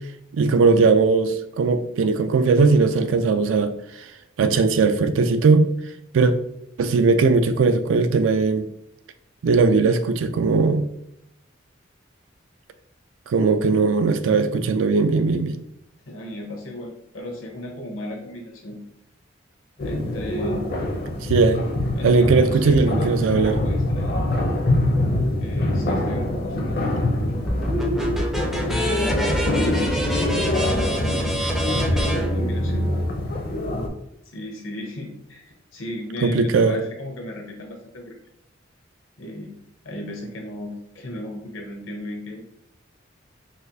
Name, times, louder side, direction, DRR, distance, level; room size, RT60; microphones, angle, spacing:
voice 1, 0.3-4.1 4.4-5.7 6.1-6.3 6.8-8.6 9.4-10.8 13.3-15.6 21.2-21.7 22.0-23.6 36.2-36.8, right 4 dB, 75° right, 10 dB, 0.3 m, -19 dB
voice 2, 16.1-18.8 19.8-20.8 22.0-24.3 25.4-27.4 28.7-30.0 31.0-33.0 34.3-38.2 39.2-39.6 39.8-42.4, left 1 dB, 85° left, 0 dB, 0.9 m, -35 dB
sound 1, 19.8-33.9, left 1 dB, 50° left, 0.5 m, -25 dB
sound 2, 27.5-33.1, equal, ahead, 0.3 m, -25 dB
4.1 x 2.4 x 2.6 m, 0.78 s
head